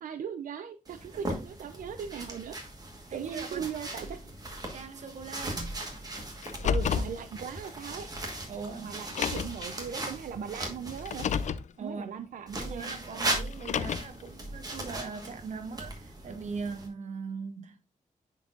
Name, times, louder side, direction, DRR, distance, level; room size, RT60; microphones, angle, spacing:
voice 1, 0.0-2.6 3.1-4.2 6.6-8.1 8.8-11.3 11.8-13.0, right 8 dB, 85° right, 0.5 m, -39 dB
sound 1, 0.8-11.5 12.5-16.9, right 2 dB, 30° right, 1.3 m, -38 dB
voice 2, 3.1-4.1 4.7-5.8 8.5-9.0 11.8-12.3 12.6-17.8, right 5 dB, 60° right, 0.9 m, -40 dB
Car, 6.4-7.2 8.2-8.3 9.0-9.6 11.0-11.7 13.5-14.2, left 7 dB, 60° left, 0.4 m, -30 dB
10.0 x 4.1 x 2.4 m
wide cardioid pair, 155°, 14 cm